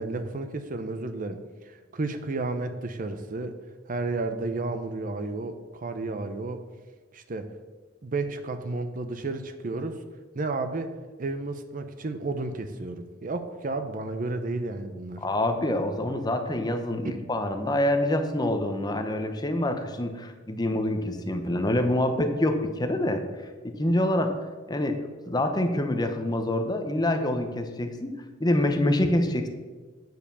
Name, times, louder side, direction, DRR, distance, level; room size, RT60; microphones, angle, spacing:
voice 1, 0.0-1.4 1.9-3.6 3.9-6.7 7.1-7.5 8.0-10.0 10.3-10.9 11.2-15.2 17.0-17.3, right 3 dB, 45° right, 8 dB, 0.6 m, -32 dB
voice 2, 15.2-23.2 23.6-24.3 24.7-25.0 25.3-29.5, left 1 dB, 20° left, 6 dB, 0.8 m, -26 dB
9.2 x 5.0 x 6.7 m, 1.4 s
head